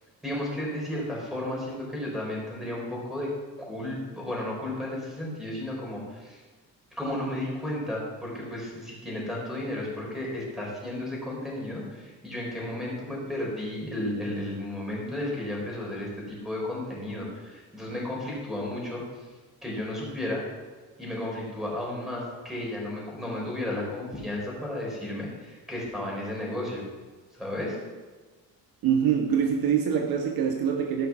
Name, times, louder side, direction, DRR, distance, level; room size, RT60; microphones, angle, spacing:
voice 1, 0.2-3.3 3.6-6.4 7.0-19.0 19.6-20.4 21.0-26.8 27.3-27.8, left 1 dB, ahead, -3 dB, 4.1 m, -33 dB
voice 2, 28.8-31.1, right 7 dB, 70° right, 3 dB, 1.2 m, -24 dB
14.0 x 5.8 x 5.9 m, 1.3 s
cardioid pair, 140°, 37 cm